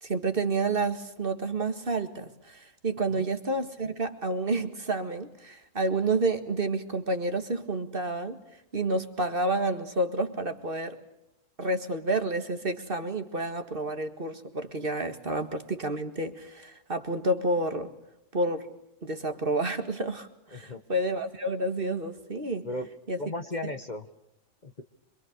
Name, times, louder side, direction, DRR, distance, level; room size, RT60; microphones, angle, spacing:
voice 1, 0.0-8.4 8.7-11.0 11.6-17.9 18.3-18.7 19.0-22.7 23.1-23.2, right 2 dB, 40° right, 7 dB, 2.0 m, -29 dB
voice 2, 23.2-24.1 24.6-24.8, left 1 dB, 35° left, 8 dB, 1.4 m, -35 dB
26.5 x 24.5 x 6.6 m, 0.84 s
omnidirectional pair, 1.4 m